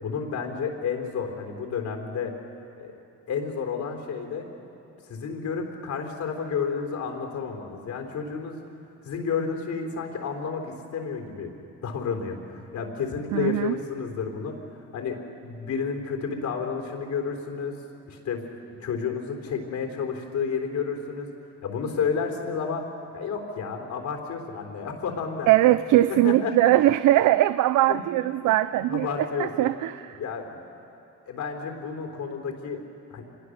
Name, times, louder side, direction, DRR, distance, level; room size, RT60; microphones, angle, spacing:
voice 1, 0.0-2.3 2.8-4.5 5.0-8.6 9.0-11.5 11.8-14.6 14.9-17.8 18.1-18.4 18.8-21.3 21.6-22.9 23.1-25.5 26.1-26.5 27.9-28.0 28.9-29.7 30.2-30.6 31.3-32.8 33.1-33.2, left 6 dB, 70° left, 3 dB, 3.7 m, -31 dB
voice 2, 13.3-13.7 25.5-29.1 29.4-30.2, right 15 dB, 80° right, 14 dB, 0.5 m, -21 dB
25.5 x 21.5 x 6.6 m, 2.7 s
cardioid pair, 90°, 30 cm